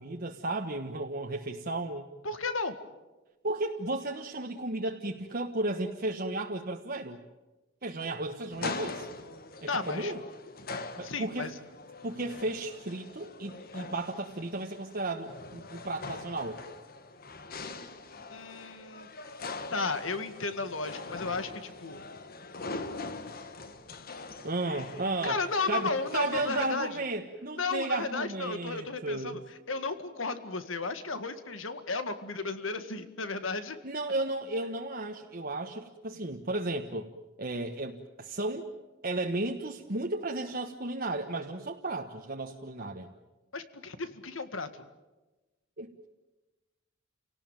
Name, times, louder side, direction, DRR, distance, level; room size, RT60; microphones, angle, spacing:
voice 1, 0.0-2.0 3.4-7.2 7.8-9.1 9.6-10.2 11.0-11.5 12.0-16.6 24.4-25.4 25.7-29.4 33.8-37.1 37.4-38.7 39.0-43.1 45.8-45.9, right 2 dB, 50° right, 2 dB, 1.4 m, -34 dB
voice 2, 2.2-2.8 9.7-10.1 11.0-11.5 18.3-19.1 19.7-22.1 25.2-27.0 27.6-29.4 29.7-33.8 43.5-44.8, left 3 dB, 85° left, 10 dB, 2.0 m, -34 dB
sound 1, 8.5-26.8, left 3 dB, 50° left, 1.5 m, -43 dB
29.5 x 18.5 x 9.1 m, 1.1 s
head